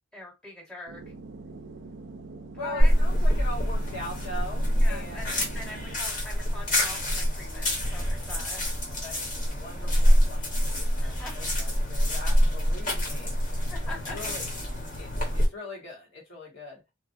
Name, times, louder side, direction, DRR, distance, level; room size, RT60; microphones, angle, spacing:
voice 1, 0.1-1.0 2.5-2.9 4.7-8.6 11.0-11.3 13.7-14.2, left 2 dB, 5° left, 1.2 m, -43 dB
sound 1, 0.9-5.9, right 3 dB, 65° right, 0.4 m, -43 dB
voice 2, 2.6-5.4 9.0-14.5 15.0-16.8, left 2 dB, 70° left, 1.3 m, -41 dB
sound 2, 2.8-15.5, equal, 45° left, 1.2 m, -25 dB
2.9 x 2.4 x 2.6 m
head